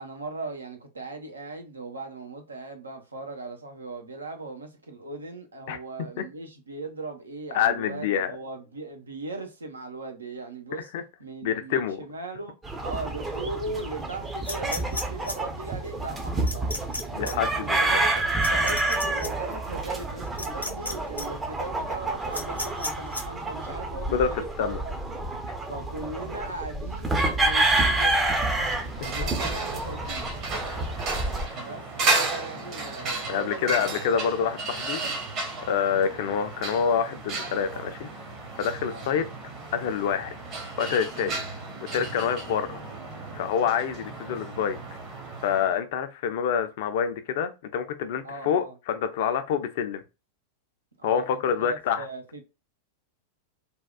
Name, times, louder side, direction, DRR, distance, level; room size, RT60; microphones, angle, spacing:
voice 1, 0.0-10.9 11.2-16.7 17.2-18.2 18.5-24.9 25.6-28.3 28.9-30.2 31.5-34.6 38.8-39.1 48.2-48.7 51.0-52.4, right 3 dB, 75° right, 0.7 m, -38 dB
voice 2, 7.5-8.3 10.9-11.0 11.4-12.0 17.1-17.9 24.1-24.3 24.6-24.8 33.3-35.0 35.7-38.1 38.6-39.3 39.7-40.3 40.8-41.4 41.9-42.8 43.3-44.8 45.4-50.0 51.0-52.1, left 7 dB, 50° left, 0.4 m, -27 dB
sound 1, 12.6-31.5, right 2 dB, 15° right, 0.5 m, -28 dB
sound 2, 14.5-15.4 16.5-17.0 17.3-17.4 18.4-19.3 20.4-20.9 21.2-21.3 22.3-23.2, left 2 dB, 85° left, 0.8 m, -32 dB
sound 3, 28.4-45.8, right 3 dB, 35° right, 1.0 m, -33 dB
3.4 x 2.3 x 2.2 m
figure-of-eight pair, 90°, 0 cm